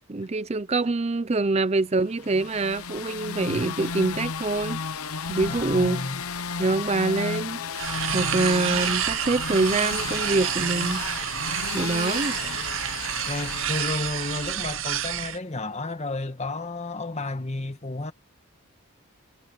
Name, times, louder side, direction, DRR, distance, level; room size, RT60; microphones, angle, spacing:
voice 1, 0.1-4.8 5.3-6.1 6.6-7.6 8.1-11.0 11.7-12.4, right 3 dB, 30° right, 0.5 m, -25 dB
sound 1, 2.1-15.0, left 5 dB, 90° left, 1.0 m, -33 dB
voice 2, 5.5-6.2 8.1-8.4 12.4-12.7 13.2-18.1, left 2 dB, 30° left, 1.3 m, -32 dB
sound 2, 7.7-15.4, right 11 dB, 65° right, 0.7 m, -29 dB
head